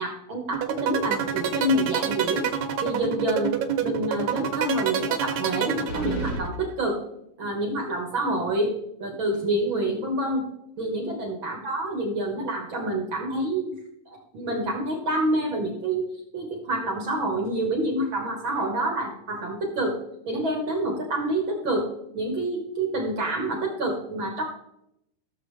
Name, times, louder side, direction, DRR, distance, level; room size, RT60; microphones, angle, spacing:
voice 1, 0.0-2.5 2.8-3.5 3.8-7.0 7.4-10.4 10.8-13.8 14.1-20.0 20.3-21.9 22.1-24.4, right 1 dB, 60° right, 1 dB, 1.3 m, -27 dB
sound 1, 0.5-6.5, right 9 dB, 85° right, 2.8 m, -27 dB
sound 2, 5.9-6.4, right 3 dB, 65° left, 4.3 m, -32 dB
15.0 x 7.1 x 3.2 m, 0.80 s
omnidirectional pair, 4.0 m